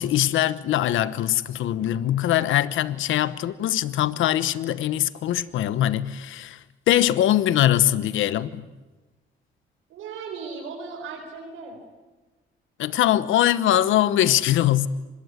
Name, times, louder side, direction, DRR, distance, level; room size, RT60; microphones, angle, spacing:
voice 1, 0.0-8.7 12.8-14.9, left 12 dB, 80° left, 1.1 m, -22 dB
voice 2, 9.9-11.8, right 5 dB, 85° right, 4.7 m, -37 dB
25.5 x 21.0 x 9.6 m
cardioid pair, 90°, 20 cm